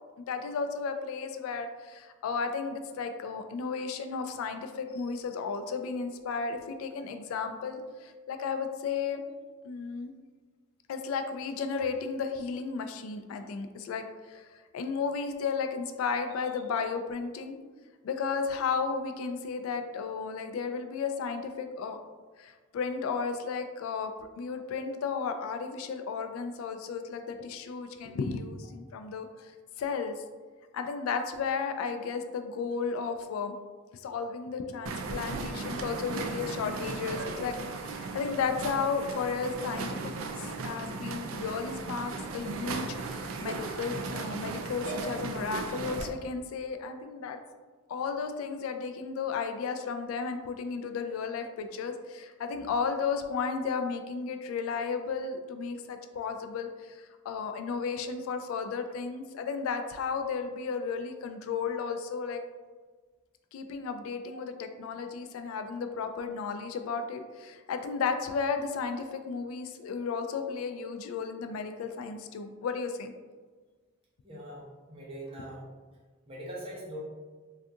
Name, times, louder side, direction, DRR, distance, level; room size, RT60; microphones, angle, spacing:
voice 1, 0.2-9.3 9.6-10.1 10.9-14.5 14.7-17.6 18.0-22.0 22.4-29.5 29.8-30.2 30.7-33.5 34.0-40.0 40.4-47.4 47.9-62.4 63.5-73.1, left 5 dB, 85° left, 8 dB, 0.3 m, -34 dB
sound 1, 34.9-46.1, right 3 dB, 75° right, 0.3 m, -36 dB
voice 2, 74.2-75.7 76.3-77.0, right 1 dB, 25° right, -4 dB, 0.8 m, -42 dB
2.6 x 2.4 x 3.4 m, 1.4 s
head